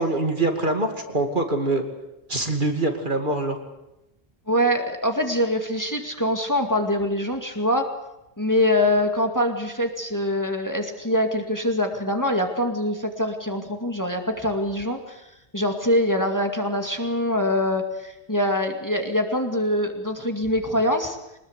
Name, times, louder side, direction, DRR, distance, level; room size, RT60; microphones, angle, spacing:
voice 1, 0.0-1.8 2.3-3.6, right 2 dB, 45° right, 5 dB, 2.6 m, -24 dB
voice 2, 4.5-7.9 8.4-15.2 15.5-21.2, left 1 dB, 15° left, 4 dB, 2.2 m, -24 dB
23.5 x 20.5 x 8.3 m, 0.90 s
omnidirectional pair, 1.1 m